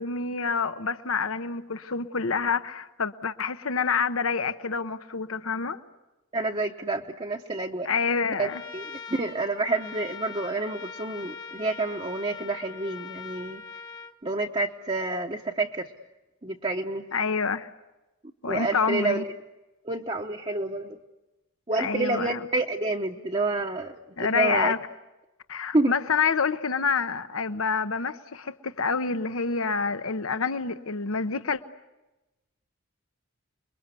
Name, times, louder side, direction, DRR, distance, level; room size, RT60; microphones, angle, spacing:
voice 1, 0.0-5.8 7.8-8.6 17.1-17.7 18.4-19.2 21.8-22.4 24.2-24.8 25.5-31.6, left 5 dB, 85° left, 1.0 m, -27 dB
voice 2, 6.3-7.9 8.4-13.6 14.2-15.9 16.4-17.0 18.5-19.3 19.8-21.0 21.7-24.7 25.7-25.9, right 2 dB, 30° right, 0.9 m, -29 dB
Trumpet, 8.4-14.1, left 5 dB, 20° left, 1.1 m, -42 dB
29.0 x 22.5 x 8.3 m
head